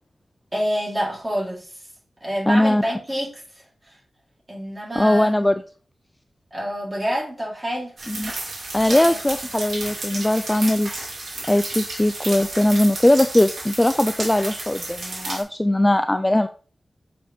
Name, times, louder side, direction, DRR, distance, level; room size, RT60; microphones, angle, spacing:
voice 1, 0.5-1.7 2.2-3.4 3.9-4.0 4.5-5.3 6.5-7.9 8.8-9.2, equal, 20° right, -3 dB, 3.3 m, -27 dB
voice 2, 2.5-2.8 4.9-5.5 8.1-8.3 8.7-10.9 11.5-16.5, left 1 dB, 15° left, 9 dB, 0.4 m, -19 dB
sound 1, 8.0-15.4, right 2 dB, 70° right, 2.2 m, -32 dB
7.1 x 5.1 x 3.5 m, 0.39 s
wide cardioid pair, 90°, 0 cm